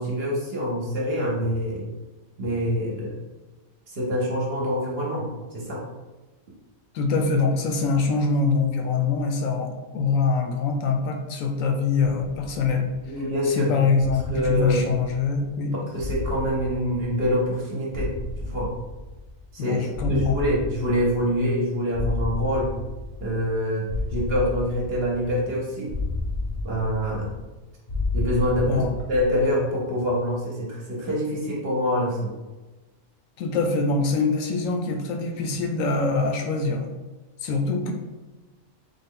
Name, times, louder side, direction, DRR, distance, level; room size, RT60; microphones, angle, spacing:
voice 1, 0.0-1.9 2.4-3.2 3.9-5.8 13.0-13.8 14.0-14.9 15.9-18.7 19.5-22.7 23.2-25.9 26.6-27.3 28.1-32.3, equal, 55° right, -3 dB, 0.9 m, -26 dB
voice 2, 6.9-12.9 13.5-15.7 19.6-20.4 28.6-28.9 33.4-36.9 37.4-37.9, left 4 dB, 80° left, 4 dB, 1.0 m, -24 dB
sound 1, 14.0-15.5 16.0-17.6 17.9-19.5 19.9-21.6 21.9-23.5 23.9-25.5 25.9-27.5 27.9-29.5, left 2 dB, 50° left, 0.5 m, -32 dB
3.6 x 2.1 x 3.7 m, 1.2 s
omnidirectional pair, 1.4 m